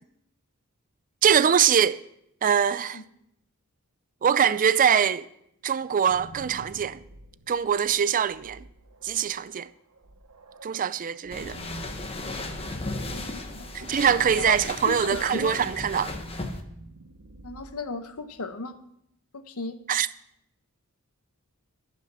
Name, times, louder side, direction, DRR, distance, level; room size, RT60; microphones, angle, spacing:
voice 1, 1.2-2.0 2.4-3.0 4.2-5.3 5.6-7.0 7.5-8.7 9.0-9.7 10.6-11.6 13.7-16.1 19.9-20.1, right 8 dB, 35° right, 0.4 m, -23 dB
sound 1, 5.8-18.7, right 2 dB, 80° right, 1.1 m, -48 dB
sound 2, 11.3-16.6, left 2 dB, 25° left, 1.1 m, -36 dB
voice 2, 13.1-13.9 14.3-14.6 14.9-15.6 17.4-18.7 19.3-19.8, left 3 dB, 75° left, 1.0 m, -36 dB
14.5 x 5.9 x 6.7 m
head